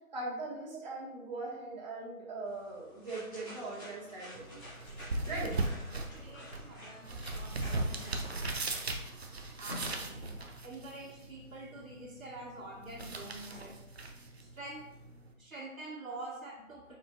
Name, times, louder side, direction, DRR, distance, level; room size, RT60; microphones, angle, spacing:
voice 1, 0.1-4.6 5.2-5.5, right 2 dB, 30° right, -5 dB, 1.8 m, -40 dB
sound 1, 2.4-10.0, left 1 dB, 15° left, 2.3 m, -50 dB
sound 2, 4.3-15.3, right 2 dB, 45° right, 0.8 m, -39 dB
voice 2, 6.1-8.7 9.5-10.3 10.6-13.8 14.4-14.8 15.4-17.0, right 2 dB, 70° right, -6 dB, 1.9 m, -47 dB
9.1 x 5.1 x 2.5 m, 0.90 s
figure-of-eight pair, 160°, 43 cm